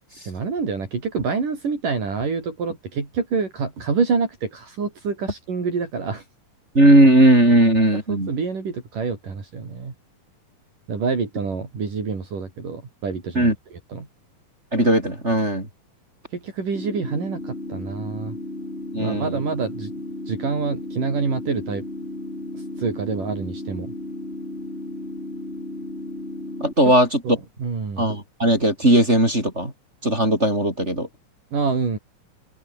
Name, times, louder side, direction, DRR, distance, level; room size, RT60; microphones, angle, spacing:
voice 1, 0.3-6.2 7.9-9.9 10.9-14.1 16.3-18.4 19.0-19.9 20.3-21.9 22.5-23.9 26.8-26.9 27.2-28.1 31.5-32.0, right 5 dB, 65° right, 6.8 m, -27 dB
voice 2, 6.7-8.3 13.3-13.5 14.7-15.7 18.9-19.4 26.6-27.2 28.0-29.7 30.0-31.1, right 1 dB, 20° right, 6.4 m, -17 dB
sound 1, 16.7-26.7, left 1 dB, 15° left, 6.4 m, -34 dB
omnidirectional pair, 4.0 m